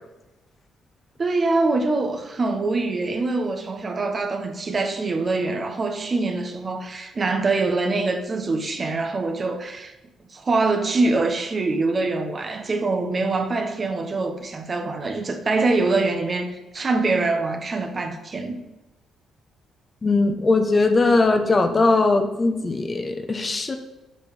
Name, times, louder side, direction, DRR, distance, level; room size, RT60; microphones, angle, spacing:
voice 1, 1.2-9.9 10.3-18.6, right 3 dB, 40° right, 1.4 m, -24 dB
voice 2, 20.0-23.8, left 3 dB, 35° left, 1.3 m, -20 dB
7.9 x 5.9 x 7.3 m
hypercardioid pair, 45°, 0 cm